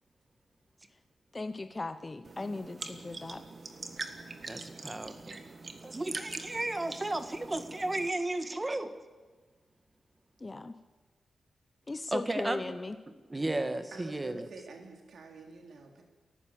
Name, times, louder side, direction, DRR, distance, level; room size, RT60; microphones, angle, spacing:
voice 1, 1.3-3.4 10.4-10.8 11.9-13.0, left 2 dB, 20° left, 9 dB, 0.7 m, -37 dB
sound 1, 2.2-8.1, right 3 dB, 35° right, 1.6 m, -43 dB
voice 2, 4.5-5.4 5.8-8.9 12.1-12.6 13.3-14.4, right 2 dB, 15° right, 9 dB, 1.4 m, -34 dB
voice 3, 13.9-16.0, right 3 dB, 60° right, 2 dB, 3.4 m, -48 dB
29.5 x 15.0 x 7.6 m, 1.3 s
wide cardioid pair, 175°, 0 cm